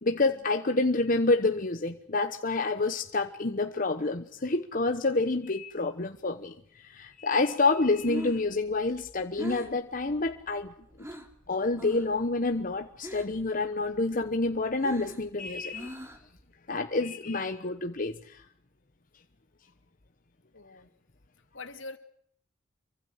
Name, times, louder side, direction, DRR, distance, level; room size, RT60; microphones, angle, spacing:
voice 1, 0.0-6.6 6.8-10.7 11.5-15.9 16.7-18.4, left 3 dB, 45° left, 1.1 m, -28 dB
Breathing, 7.8-11.4 11.7-12.2 12.5-13.5 13.8-16.4, equal, 15° right, 3.0 m, -41 dB
voice 2, 20.5-20.9 21.5-22.0, left 3 dB, 75° left, 2.7 m, -45 dB
26.5 x 24.0 x 6.5 m
head